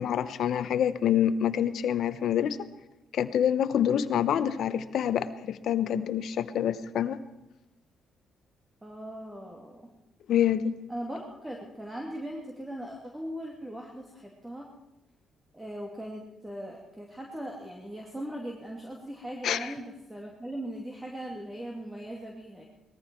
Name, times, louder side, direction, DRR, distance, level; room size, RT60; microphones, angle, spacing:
voice 1, 0.0-2.6 3.1-7.2 10.3-10.8 19.4-19.7, left 9 dB, 70° left, 11 dB, 0.9 m, -26 dB
voice 2, 8.8-9.9 10.9-14.7 15.5-22.6, right 1 dB, 10° right, -1 dB, 2.5 m, -39 dB
19.5 x 14.0 x 4.6 m, 0.97 s
cardioid pair, 90°, 0 cm